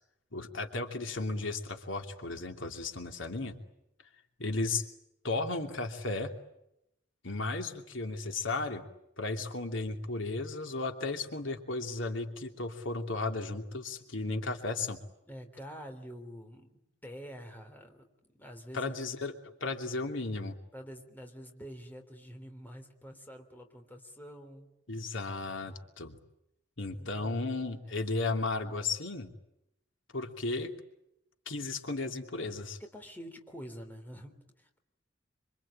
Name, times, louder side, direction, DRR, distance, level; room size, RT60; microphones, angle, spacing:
voice 1, 0.3-3.6 4.4-4.8 5.2-6.3 7.2-8.8 9.2-15.0 18.7-19.3 19.6-20.6 24.9-26.2 26.8-29.3 30.1-30.7 31.5-32.8, left 3 dB, 75° left, 5 dB, 2.9 m, -34 dB
voice 2, 15.3-16.7 17.0-19.0 20.7-24.7 26.9-27.4 27.8-28.0 32.8-34.8, equal, 10° left, 4 dB, 3.5 m, -47 dB
26.0 x 26.0 x 8.8 m, 0.83 s
head